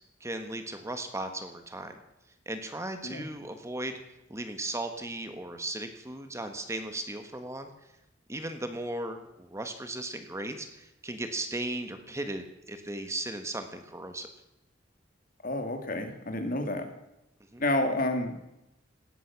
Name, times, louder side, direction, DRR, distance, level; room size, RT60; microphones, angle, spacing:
voice 1, 0.2-2.0 2.4-4.0 4.3-7.7 8.3-14.3 17.5-17.6, right 1 dB, 15° right, 7 dB, 1.4 m, -36 dB
voice 2, 15.4-16.9 17.6-18.6, left 1 dB, 45° left, 6 dB, 2.4 m, -30 dB
18.0 x 13.0 x 5.9 m, 0.92 s
head